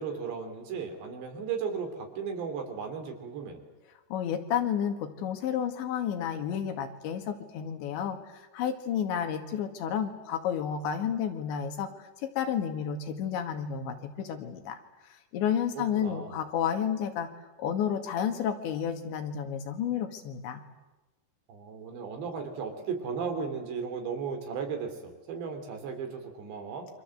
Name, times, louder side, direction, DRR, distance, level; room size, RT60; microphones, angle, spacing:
voice 1, 0.0-3.6 15.8-16.4 21.5-26.9, right 6 dB, 75° right, 5 dB, 5.6 m, -35 dB
voice 2, 4.1-11.9 12.2-14.8 15.1-17.3 17.6-20.6, left 8 dB, 85° left, 6 dB, 4.3 m, -31 dB
28.5 x 25.0 x 7.9 m, 1.1 s
omnidirectional pair, 5.1 m